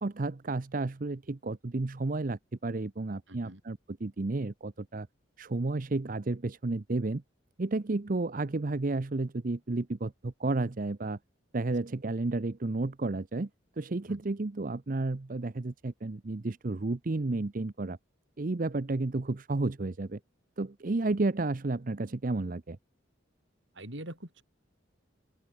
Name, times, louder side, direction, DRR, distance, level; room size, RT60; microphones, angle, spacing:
voice 1, 0.0-5.1 5.4-7.2 7.6-11.2 11.5-13.5 13.8-18.0 18.4-20.2 20.6-22.8, right 2 dB, 45° right, 0.7 m, -32 dB
voice 2, 3.3-3.6 14.1-14.2 23.7-24.4, right 1 dB, 70° right, 6.9 m, -43 dB
open air
head